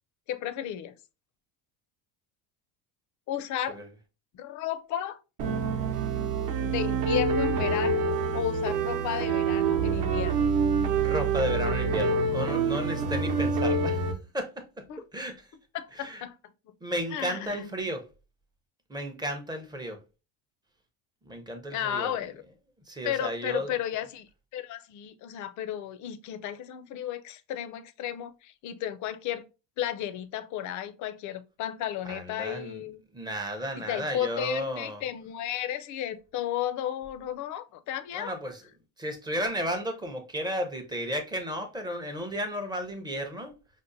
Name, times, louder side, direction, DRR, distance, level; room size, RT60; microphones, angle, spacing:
voice 1, 0.3-0.9 3.3-3.8 4.3-5.2 6.6-8.0 8.3-10.5 14.9-15.0 15.7-16.4 16.7-16.8 17.1-17.7 21.7-22.4 23.0-29.5 29.8-33.0 33.7-38.3, left 11 dB, 45° left, 0.4 m, -34 dB
sound 1, 5.4-14.2, right 4 dB, 55° right, 0.8 m, -26 dB
voice 2, 11.0-14.0 14.3-14.8 15.1-15.5 16.0-16.2 16.8-18.1 18.9-20.0 21.3-22.2 22.9-23.7 32.1-32.8 33.1-35.0 38.1-38.6 39.0-43.6, equal, 10° right, 0.5 m, -33 dB
5.1 x 2.1 x 2.5 m
cardioid pair, 120°, 42 cm